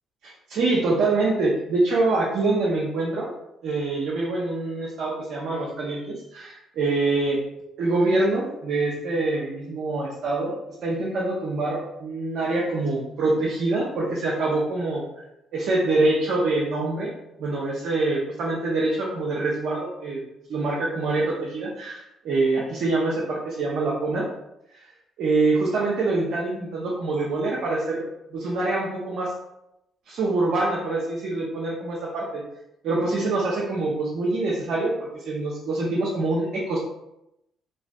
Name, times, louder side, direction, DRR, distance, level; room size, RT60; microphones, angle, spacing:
voice 1, 0.2-3.3 3.6-7.4 7.8-10.5 10.8-15.0 15.5-17.1 17.4-20.2 20.5-24.2 24.7-24.8 25.2-28.0 28.3-29.3 30.1-32.4 32.8-34.9 35.2-36.8, right 2 dB, 65° right, -4 dB, 0.6 m, -25 dB
2.7 x 2.4 x 2.2 m, 0.85 s
hypercardioid pair, 55°, 0 cm